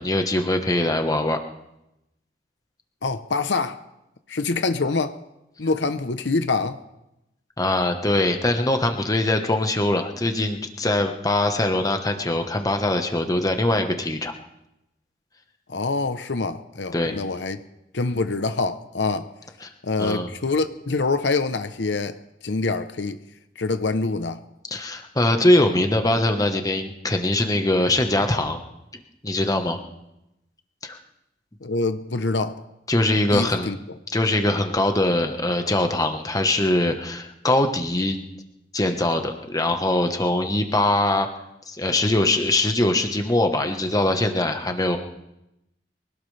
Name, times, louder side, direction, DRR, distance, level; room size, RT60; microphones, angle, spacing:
voice 1, 0.0-1.4 7.6-14.3 16.9-17.2 19.6-19.7 20.0-20.3 24.7-28.6 29.2-29.8 30.8-31.0 32.9-33.7 34.1-38.2 38.7-41.3 41.7-45.0, left 1 dB, 20° left, 1.2 m, -22 dB
voice 2, 3.0-3.8 4.3-5.2 5.6-6.8 15.7-17.6 17.9-19.3 19.8-23.2 23.6-24.4 31.6-32.6 33.3-33.8, left 3 dB, 80° left, 0.8 m, -25 dB
24.0 x 17.5 x 3.4 m
head